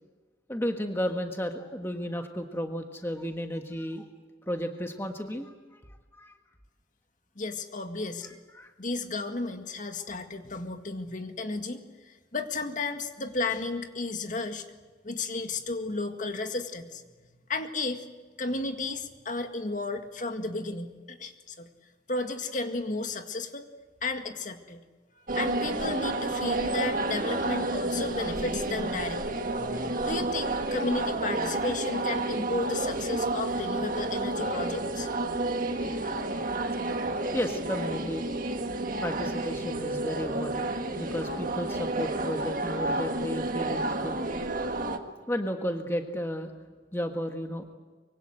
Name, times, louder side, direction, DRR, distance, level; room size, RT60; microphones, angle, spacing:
voice 1, 0.5-4.1 4.5-5.5 6.1-6.3 8.5-8.7 37.3-38.3 39.0-44.3 45.3-46.5 46.9-47.7, equal, 15° left, 4 dB, 1.5 m, -33 dB
voice 2, 7.4-8.4 8.8-14.7 15.0-17.0 17.5-18.1 18.4-21.7 22.1-23.7 24.0-24.8 25.3-29.4 30.0-35.1, left 3 dB, 45° left, 6 dB, 2.0 m, -33 dB
sound 1, 25.3-45.0, right 2 dB, 50° right, 1.7 m, -30 dB
24.5 x 24.0 x 8.0 m, 1.4 s
head